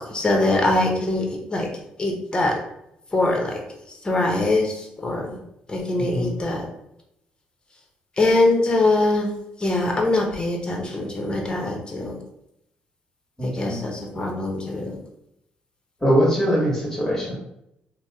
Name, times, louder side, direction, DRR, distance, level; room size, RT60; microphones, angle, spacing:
voice 1, 0.0-1.7 2.0-2.6 3.1-3.6 4.0-5.4 5.7-6.7 8.2-9.3 9.6-12.2 13.4-15.0, left 2 dB, 25° left, 1 dB, 0.9 m, -23 dB
voice 2, 6.0-6.3 13.4-13.8 16.0-17.3, equal, 10° left, -5 dB, 1.4 m, -22 dB
2.8 x 2.1 x 3.5 m, 0.79 s
supercardioid pair, 65°, 3 cm